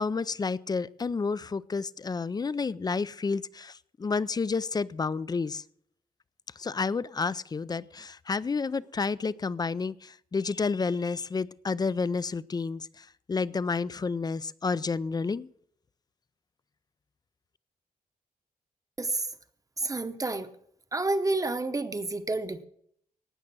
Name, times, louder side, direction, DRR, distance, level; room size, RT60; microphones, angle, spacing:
voice 1, 0.0-5.6 6.6-15.5, left 4 dB, 25° left, 19 dB, 0.4 m, -30 dB
voice 2, 19.8-20.5 20.9-22.6, right 2 dB, 20° right, 10 dB, 0.9 m, -29 dB
18.0 x 6.5 x 6.1 m, 0.69 s
wide cardioid pair, 125°, 15 cm